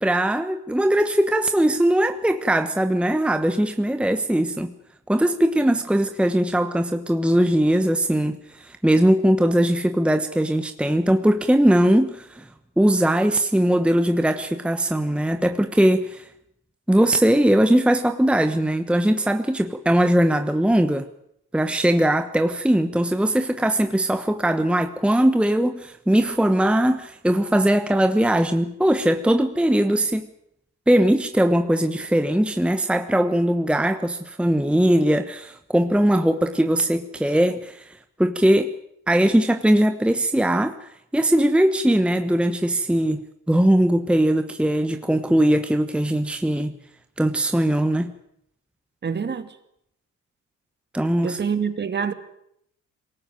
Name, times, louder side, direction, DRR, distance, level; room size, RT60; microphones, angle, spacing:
voice 1, 0.0-4.7 5.1-12.5 12.8-16.3 16.9-21.0 21.5-30.3 30.9-38.7 39.1-43.2 43.5-46.7 47.2-48.1 50.9-51.4, right 1 dB, 5° right, 1.2 m, -20 dB
voice 2, 49.0-49.6 51.2-52.1, right 6 dB, 35° right, 2.2 m, -26 dB
21.5 x 18.5 x 9.2 m
cardioid pair, 100°, 31 cm